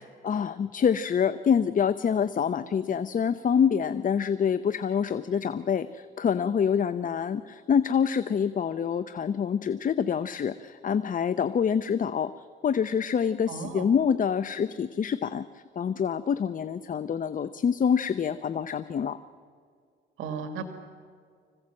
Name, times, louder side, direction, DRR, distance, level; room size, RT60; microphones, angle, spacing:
voice 1, 0.2-19.2, left 7 dB, 40° left, 13 dB, 0.7 m, -26 dB
voice 2, 13.5-13.9 20.2-20.7, right 5 dB, 85° right, 7 dB, 1.7 m, -35 dB
25.5 x 16.0 x 7.7 m, 2.2 s
cardioid pair, 90°, 20 cm